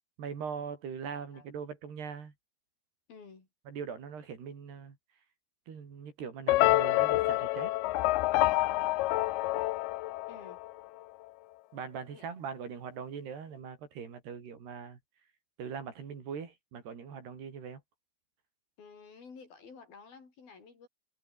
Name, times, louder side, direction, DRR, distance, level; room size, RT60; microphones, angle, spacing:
voice 1, 0.2-2.3 3.7-5.0 5.7-7.7 11.7-15.0 15.6-17.8, right 6 dB, 80° right, 6.3 m, -41 dB
voice 2, 3.1-3.5 10.3-10.6 12.1-12.3 18.8-20.9, left 5 dB, 65° left, 7.8 m, -52 dB
sound 1, 6.5-10.8, left 18 dB, 80° left, 2.7 m, -27 dB
omnidirectional pair, 4.6 m